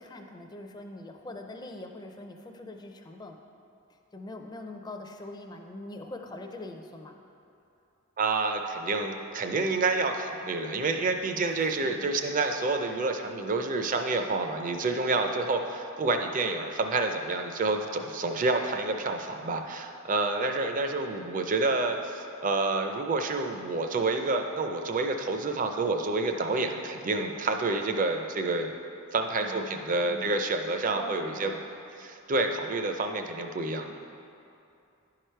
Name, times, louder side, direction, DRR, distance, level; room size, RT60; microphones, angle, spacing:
voice 1, 0.0-3.4 4.1-7.2 11.4-11.6 11.8-12.3 29.4-30.4 30.9-31.7, left 1 dB, 20° left, 3 dB, 0.4 m, -43 dB
voice 2, 8.2-28.7 29.1-31.5 32.0-33.9, right 3 dB, 40° right, 5 dB, 0.5 m, -28 dB
10.5 x 4.9 x 4.5 m, 2.7 s
head